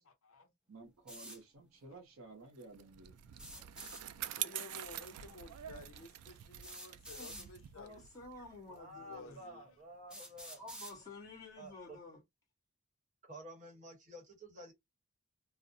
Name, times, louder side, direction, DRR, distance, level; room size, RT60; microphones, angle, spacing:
voice 1, 0.7-3.7, right 3 dB, 70° right, 0.7 m, -54 dB
sound 1, 1.1-1.4 3.3-4.0 5.5-5.6 6.6-7.5 8.5-8.6 9.3-9.4 10.1-11.0, equal, 5° right, 0.5 m, -49 dB
Bicycle, 2.6-9.3, right 12 dB, 90° right, 0.3 m, -46 dB
voice 2, 4.4-8.1 8.9-9.6, left 3 dB, 65° left, 0.6 m, -53 dB
voice 3, 7.1-9.4 10.6-12.2, left 2 dB, 15° left, 1.0 m, -51 dB
voice 4, 8.7-10.6 11.6-12.0 13.2-14.7, equal, 35° right, 0.9 m, -51 dB
2.4 x 2.0 x 2.5 m
head